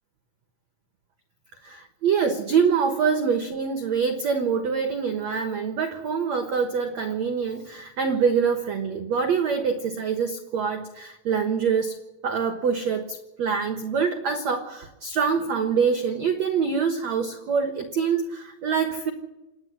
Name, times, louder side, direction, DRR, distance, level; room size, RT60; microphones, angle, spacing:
voice 1, 1.6-12.0 12.2-19.1, right 6 dB, 75° right, 7 dB, 1.5 m, -25 dB
27.5 x 10.5 x 9.8 m, 1.1 s
omnidirectional pair, 5.2 m